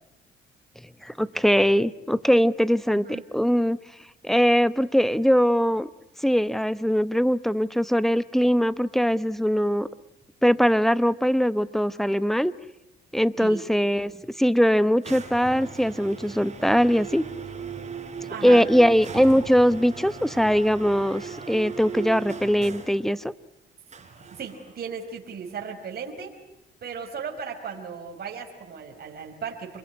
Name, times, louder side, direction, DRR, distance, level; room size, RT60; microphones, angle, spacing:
voice 1, 1.0-3.1 3.3-3.8 4.2-5.9 6.2-9.9 10.4-12.5 13.1-17.3 18.4-23.3, equal, ahead, 15 dB, 1.0 m, -21 dB
voice 2, 2.9-3.2 13.4-13.6 18.3-18.7 24.3-26.3 26.8-29.8, right 6 dB, 50° right, 1 dB, 4.8 m, -36 dB
sound 1, 15.0-23.1 23.9-24.8, right 6 dB, 35° right, 5.2 m, -38 dB
27.0 x 22.0 x 9.9 m, 0.89 s
cardioid pair, 90°, 20 cm